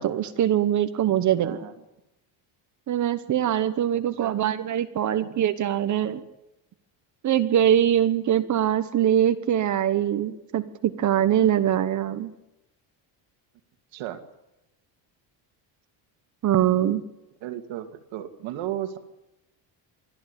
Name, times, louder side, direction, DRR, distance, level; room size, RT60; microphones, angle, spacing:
voice 1, 0.0-1.6 2.9-6.2 7.2-12.3 16.4-17.0, right 10 dB, 40° right, 11 dB, 1.1 m, -23 dB
voice 2, 1.4-1.7 3.9-4.3 13.9-14.2 17.4-19.0, right 12 dB, 85° right, 8 dB, 2.4 m, -34 dB
24.5 x 14.0 x 9.9 m, 0.92 s
cardioid pair, 175°, 45 cm